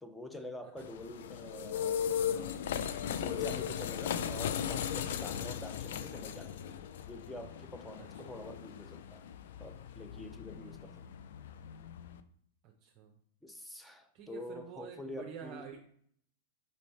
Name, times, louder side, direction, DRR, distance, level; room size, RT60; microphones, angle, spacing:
voice 1, 0.0-2.5 3.2-6.7 7.0-9.2 9.6-11.0 13.4-15.7, left 1 dB, 5° left, 7 dB, 0.5 m, -46 dB
sound 1, 0.8-12.2, left 8 dB, 70° left, 0.3 m, -38 dB
voice 2, 8.0-8.3 10.6-10.7 12.6-13.1 14.1-15.8, right 8 dB, 45° right, 2 dB, 0.6 m, -49 dB
4.1 x 3.2 x 4.1 m, 0.64 s
hypercardioid pair, 110°, 0 cm